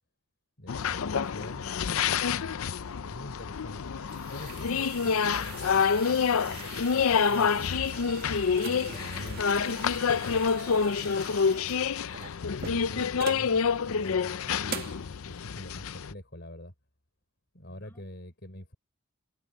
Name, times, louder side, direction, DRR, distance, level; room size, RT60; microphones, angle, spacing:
voice 1, 0.6-1.7 2.2-3.9 4.2-7.8 8.6-9.4 12.7-13.6 13.9-16.7 17.5-18.7, left 1 dB, 50° left, 4.8 m, -45 dB
sound 1, 0.7-16.1, left 6 dB, 80° left, 0.5 m, -28 dB
sound 2, 3.7-13.5 14.0-14.1 14.7-15.1, right 6 dB, 45° right, 1.7 m, -43 dB
voice 2, 17.7-18.0, equal, 10° left, 6.9 m, -56 dB
head